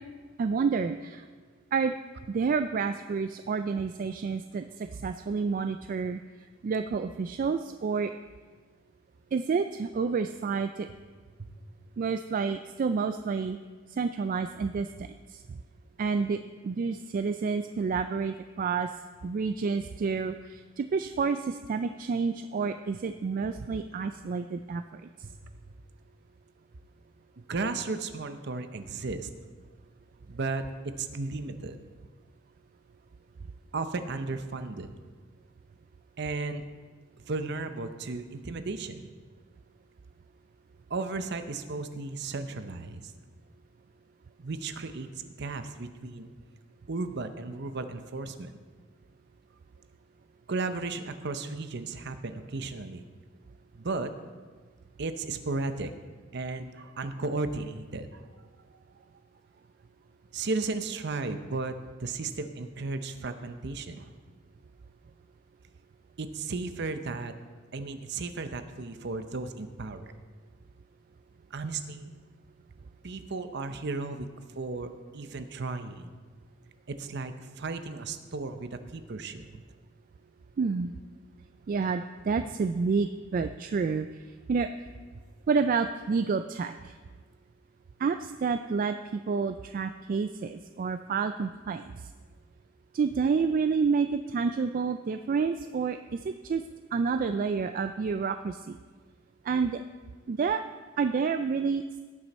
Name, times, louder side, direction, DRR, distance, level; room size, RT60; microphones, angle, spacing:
voice 1, 0.4-1.2 1.7-1.9 2.3-6.2 6.6-8.1 9.3-10.9 12.0-13.6 13.9-15.6 16.0-18.9 19.2-25.0 80.6-80.9 81.7-84.1 84.5-84.7 85.5-86.9 88.0-91.8 92.9-96.6 96.9-98.8 99.4-99.8 100.3-100.6 101.0-102.0, right 5 dB, 45° right, 9 dB, 0.3 m, -29 dB
voice 2, 27.4-29.3 30.3-31.8 33.7-34.9 36.2-36.6 37.3-39.1 40.9-43.1 44.4-45.1 45.4-46.3 46.9-48.5 50.5-53.1 53.7-54.1 55.0-55.9 56.3-58.3 60.3-64.1 66.2-67.3 67.7-70.1 71.5-72.1 73.0-76.1 76.9-79.6, right 3 dB, 60° right, 9 dB, 0.7 m, -35 dB
17.5 x 6.3 x 4.2 m, 1.5 s
head